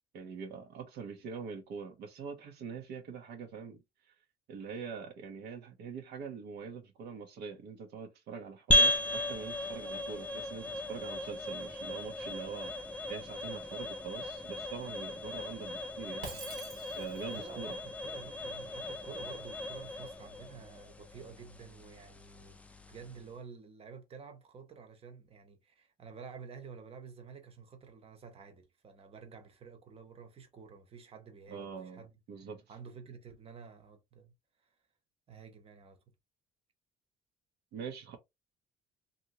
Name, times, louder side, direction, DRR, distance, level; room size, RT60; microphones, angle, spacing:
voice 1, 0.1-3.8 4.5-12.8 13.1-16.3 17.0-17.8 31.5-32.0 32.3-32.6 37.7-38.2, right 6 dB, 80° right, 0.9 m, -43 dB
sound 1, 8.7-23.3, left 1 dB, 10° left, 0.3 m, -36 dB
Shatter, 16.2-17.4, right 4 dB, 55° right, 1.1 m, -46 dB
voice 2, 17.3-22.6 22.9-32.1 32.7-34.3 34.6-34.7 35.3-36.0, right 6 dB, 35° right, 0.8 m, -50 dB
2.8 x 2.6 x 2.8 m
cardioid pair, 110°, 17 cm